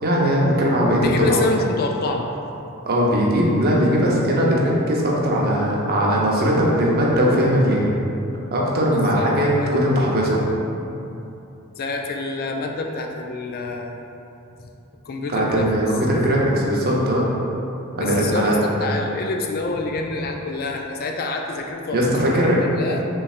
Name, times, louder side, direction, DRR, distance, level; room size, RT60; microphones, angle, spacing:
voice 1, 0.0-1.3 2.9-7.9 8.5-10.4 15.3-17.3 17.9-18.6 21.9-22.6, equal, 45° right, -4 dB, 0.7 m, -19 dB
voice 2, 1.0-2.3 8.9-9.7 11.8-14.0 15.1-15.7 18.0-22.0 22.3-23.0, left 3 dB, 45° left, 2 dB, 0.3 m, -27 dB
5.5 x 3.2 x 2.4 m, 2.9 s
head